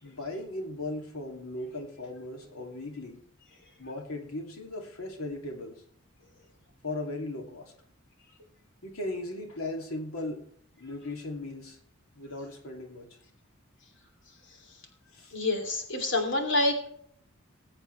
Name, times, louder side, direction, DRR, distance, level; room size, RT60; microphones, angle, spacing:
voice 1, 0.0-3.2 3.8-5.8 6.8-7.7 8.4-8.5 8.8-10.5 10.8-11.8 12.1-13.2 15.1-15.4, left 2 dB, 90° left, 2 dB, 2.7 m, -37 dB
voice 2, 15.3-16.9, left 2 dB, 60° left, 4 dB, 2.9 m, -27 dB
21.0 x 8.1 x 3.3 m, 0.63 s
head